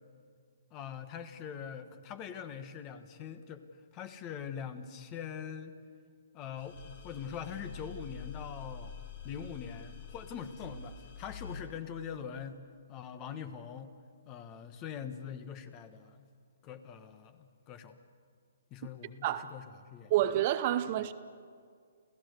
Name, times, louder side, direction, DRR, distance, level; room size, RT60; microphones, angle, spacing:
voice 1, 0.7-3.6 3.9-5.8 6.3-8.9 9.2-12.6 12.9-13.9 14.3-16.3 16.6-18.0 18.7-19.7 19.9-20.1, left 8 dB, 25° left, 1.4 m, -43 dB
sound 1, 6.6-11.6, left 5 dB, 55° left, 3.4 m, -46 dB
voice 2, 20.1-21.1, right 13 dB, 40° right, 0.8 m, -28 dB
29.5 x 15.5 x 6.8 m
hypercardioid pair, 140°, 0 cm